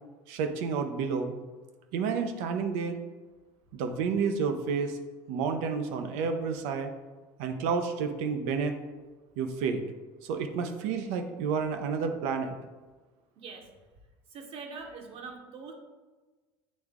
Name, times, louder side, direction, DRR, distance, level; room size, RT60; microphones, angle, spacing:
voice 1, 0.3-1.3 1.9-3.0 3.7-5.0 5.3-6.9 7.4-8.8 9.4-9.8 10.2-12.5, right 5 dB, 75° right, 7 dB, 0.7 m, -30 dB
voice 2, 13.3-13.7 14.3-15.7, right 4 dB, 55° right, 3 dB, 1.2 m, -43 dB
8.4 x 3.4 x 3.6 m, 1.3 s
supercardioid pair, 90°, 12 cm